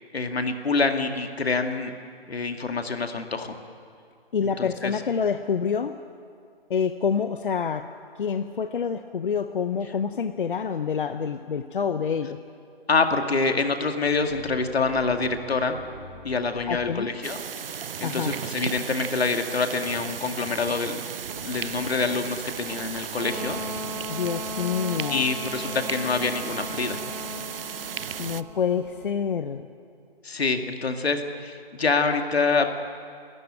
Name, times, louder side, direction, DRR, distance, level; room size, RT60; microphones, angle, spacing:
voice 1, 0.1-1.9 2.3-3.6 4.4-4.9 12.9-15.8 16.2-17.4 17.7-21.0 21.4-23.6 25.1-27.0 30.2-32.8, left 4 dB, 85° left, 5 dB, 2.3 m, -26 dB
voice 2, 4.3-6.0 6.7-7.9 8.2-12.4 16.7-17.1 18.0-18.3 24.1-25.3 28.2-29.7, left 6 dB, 55° left, 10 dB, 0.8 m, -27 dB
sound 1, 14.0-17.5, left 1 dB, 40° left, 6.9 m, -45 dB
sound 2, 17.2-28.4, right 8 dB, 65° right, 0.6 m, -35 dB
sound 3, 21.2-29.1, right 1 dB, 45° right, 2.4 m, -37 dB
28.5 x 13.5 x 8.8 m, 2.3 s
hypercardioid pair, 165°, 30 cm